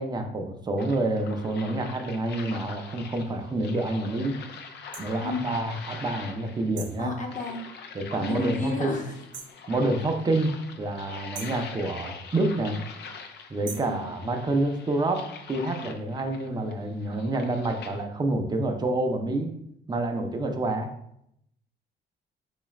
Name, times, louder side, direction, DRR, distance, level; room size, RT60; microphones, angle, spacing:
voice 1, 0.0-4.4 5.0-7.1 7.9-9.0 9.7-12.8 13.5-19.5 19.9-20.9, right 2 dB, 20° right, 4 dB, 0.5 m, -28 dB
sound 1, 0.8-18.0, left 5 dB, 60° left, 0.5 m, -44 dB
sound 2, 4.9-5.1 6.8-7.0 9.3-9.6 11.3-11.6 13.6-14.0, right 6 dB, 65° right, 0.6 m, -40 dB
voice 2, 5.2-5.5 7.0-7.7 8.2-9.1 11.4-11.5 13.6-14.2, left 2 dB, 40° left, 1 dB, 0.8 m, -33 dB
3.8 x 2.4 x 3.1 m, 0.74 s
cardioid pair, 90°, 20 cm